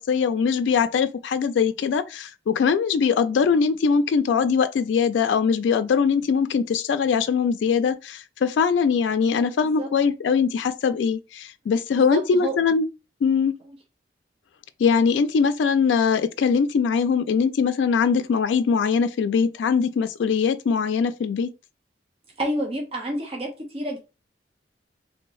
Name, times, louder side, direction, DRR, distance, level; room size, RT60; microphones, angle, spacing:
voice 1, 0.0-12.9 13.2-13.5 14.8-21.5, left 6 dB, 90° left, 0.3 m, -22 dB
voice 2, 11.9-12.6 13.6-13.8 22.4-24.0, right 1 dB, 35° right, 0.9 m, -29 dB
3.2 x 2.6 x 3.1 m
head